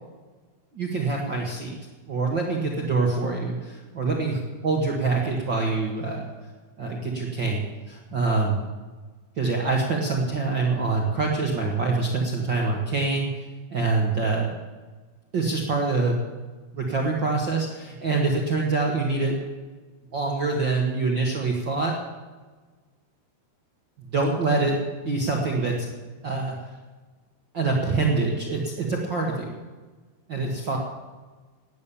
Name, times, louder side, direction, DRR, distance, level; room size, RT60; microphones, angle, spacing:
voice 1, 0.7-1.7 2.1-6.3 6.8-8.6 9.4-13.3 13.7-14.5 15.3-16.2 16.7-19.4 20.1-22.0 24.1-25.9 26.2-26.6 27.5-29.6 30.3-30.8, right 3 dB, 75° right, 0 dB, 1.0 m, -25 dB
18.0 x 8.9 x 7.0 m, 1.3 s
omnidirectional pair, 4.8 m